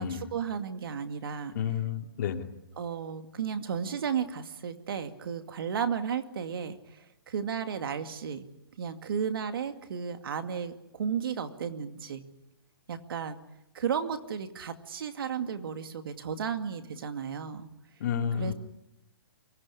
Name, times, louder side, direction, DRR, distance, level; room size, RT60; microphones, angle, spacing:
voice 1, 0.0-1.5 2.8-8.5 8.8-12.2 12.9-13.4 13.7-17.7 18.4-18.5, right 7 dB, 65° right, 7 dB, 2.3 m, -34 dB
voice 2, 1.5-2.5 18.0-18.5, left 8 dB, 50° left, 5 dB, 2.5 m, -30 dB
24.0 x 18.5 x 10.0 m, 0.93 s
hypercardioid pair, 155°, 13 cm